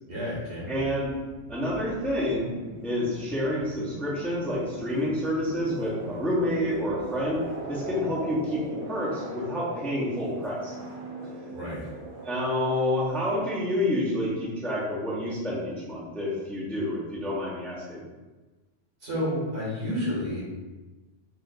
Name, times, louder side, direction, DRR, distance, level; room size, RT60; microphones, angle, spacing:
voice 1, 0.1-0.8 11.5-11.9 19.0-20.4, equal, 65° right, -8 dB, 2.0 m, -31 dB
voice 2, 0.7-1.2 1.5-2.5 2.8-7.4 7.7-10.7 12.2-18.0, left 1 dB, ahead, -7 dB, 0.7 m, -28 dB
sound 1, 0.9-14.2, right 2 dB, 85° right, 1.2 m, -40 dB
5.6 x 2.5 x 2.5 m, 1.2 s
omnidirectional pair, 1.2 m